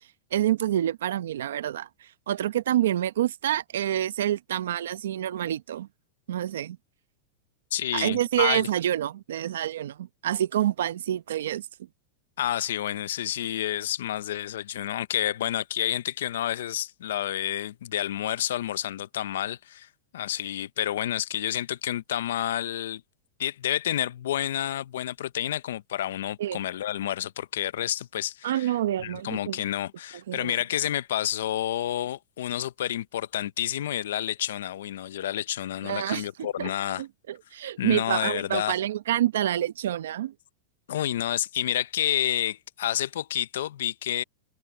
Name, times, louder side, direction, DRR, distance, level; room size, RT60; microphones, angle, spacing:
voice 1, 0.3-1.9 2.3-5.9 6.3-6.8 7.9-11.7 26.4-26.6 28.4-29.6 30.3-30.5 35.8-36.7 37.0-40.3, right 12 dB, 90° right, 0.8 m, -27 dB
voice 2, 7.7-8.7 12.4-19.9 20.1-23.0 23.4-37.0 37.8-38.8 40.9-44.2, left 12 dB, 85° left, 0.6 m, -29 dB
supercardioid pair, 165°, 0 cm